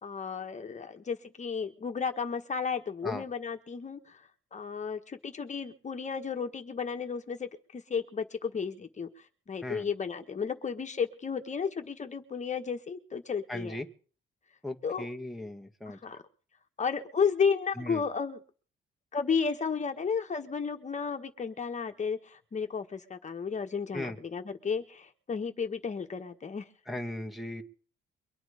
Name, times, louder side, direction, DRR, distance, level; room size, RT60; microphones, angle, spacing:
voice 1, 0.0-13.8 14.8-15.1 15.9-16.2 16.8-18.4 19.1-26.6, left 6 dB, 35° left, 5 dB, 1.4 m, -33 dB
voice 2, 13.5-13.9 14.6-16.0 17.8-18.0 23.9-24.2 26.9-27.6, left 1 dB, ahead, 2 dB, 1.6 m, -37 dB
23.5 x 9.0 x 5.0 m, 0.41 s
cardioid pair, 90°, 20 cm